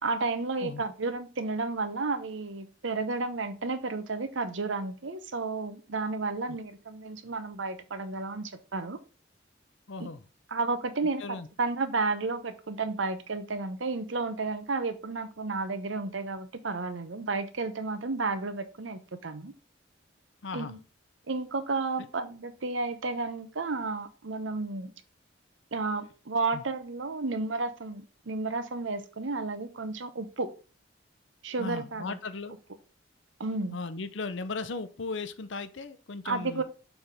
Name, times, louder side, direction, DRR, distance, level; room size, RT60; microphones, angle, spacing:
voice 1, 0.0-9.0 10.0-10.1 10.5-11.2 11.6-19.5 20.5-20.8 21.3-24.9 25.7-30.5 31.4-32.2 33.4-33.7 36.2-36.6, right 3 dB, 80° right, 0.9 m, -32 dB
voice 2, 9.9-10.2 11.2-11.5 20.4-20.8 22.0-22.1 26.5-26.6 31.6-32.5 33.7-36.6, left 3 dB, 75° left, 0.7 m, -37 dB
7.1 x 3.5 x 5.2 m
head